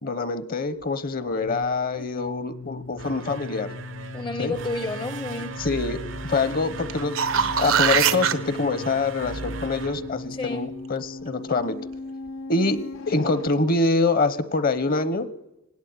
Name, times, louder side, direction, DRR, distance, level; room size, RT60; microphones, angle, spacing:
voice 1, 0.0-3.7 4.4-4.5 5.6-7.2 7.6-11.8 12.5-12.8 13.1-15.3, left 3 dB, 45° left, 14 dB, 0.9 m, -25 dB
sound 1, 0.6-13.5, left 3 dB, 70° left, 0.7 m, -38 dB
voice 2, 2.0-2.3 4.1-5.6 10.3-10.7, left 3 dB, 20° left, 10 dB, 0.6 m, -31 dB
sound 2, 2.8-10.8, right 4 dB, 65° right, 0.7 m, -38 dB
sound 3, 6.9-8.3 13.1-13.2, right 8 dB, 90° right, 1.1 m, -22 dB
18.5 x 17.0 x 9.4 m, 0.98 s
head